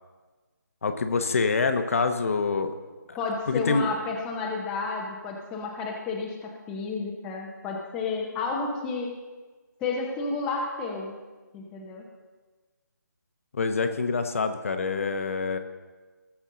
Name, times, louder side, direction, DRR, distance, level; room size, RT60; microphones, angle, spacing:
voice 1, 0.8-2.7 3.1-3.2 3.5-3.8 13.5-15.6, left 4 dB, 45° left, 7 dB, 0.9 m, -26 dB
voice 2, 3.2-9.1 9.8-11.2 11.5-12.0, left 4 dB, 10° left, -1 dB, 0.7 m, -31 dB
19.0 x 7.1 x 3.8 m, 1.3 s
figure-of-eight pair, 160°, 10 cm